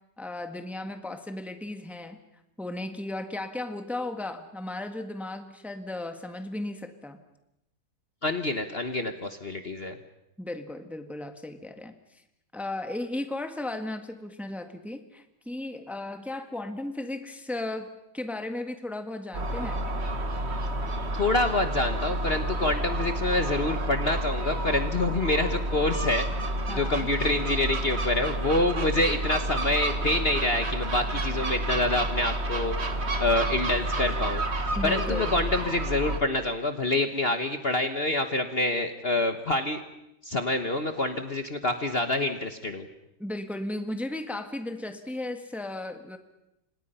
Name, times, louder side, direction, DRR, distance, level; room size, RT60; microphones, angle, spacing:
voice 1, 0.2-2.2 2.6-7.2 10.4-12.0 12.5-19.9 26.7-27.1 34.7-35.4 43.2-46.2, left 2 dB, ahead, 7 dB, 1.6 m, -35 dB
voice 2, 8.2-10.0 21.1-26.3 26.5-32.7 33.2-34.4 34.8-39.8 40.2-42.9, left 2 dB, 35° left, 7 dB, 1.4 m, -27 dB
Gull seagull, 19.3-36.2, right 1 dB, 40° right, 1.9 m, -30 dB
30.0 x 26.5 x 5.6 m, 0.86 s
omnidirectional pair, 1.8 m